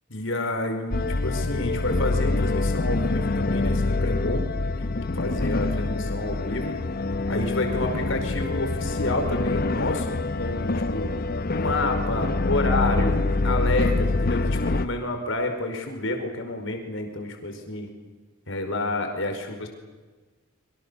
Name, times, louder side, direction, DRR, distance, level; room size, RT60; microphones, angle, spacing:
voice 1, 0.1-4.4 5.1-6.8 7.3-11.1 11.5-13.2 13.4-17.9 18.5-19.7, left 2 dB, 65° left, 5 dB, 4.9 m, -29 dB
sound 1, 0.9-14.9, left 2 dB, 45° left, 0.9 m, -25 dB
26.5 x 24.0 x 7.1 m, 1.3 s
head